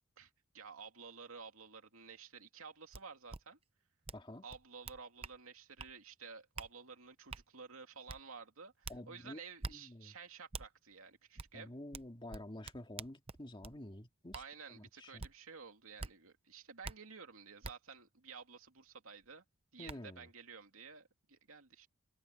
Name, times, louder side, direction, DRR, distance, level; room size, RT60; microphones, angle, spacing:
voice 1, 0.2-3.6 4.4-11.7 14.3-19.4 19.7-21.9, right 5 dB, 80° right, 2.7 m, -53 dB
sound 1, 2.9-3.0 3.3-3.4 4.1-4.2 4.5-5.4 5.8-5.9 6.6-6.7 7.3-7.4 8.1-8.2 8.8-9.0 9.6-9.8 10.5-10.7 11.4-11.5 11.9-13.8 14.3-14.5 15.2-15.3 16.0-16.1 16.8-17.0 17.6-17.7 19.2-19.3 19.9-20.0, right 4 dB, 30° right, 0.6 m, -45 dB
voice 2, 4.1-4.4 8.9-9.4 9.7-10.1 11.5-14.4 14.7-15.3 19.8-20.3, left 1 dB, 25° left, 2.1 m, -49 dB
head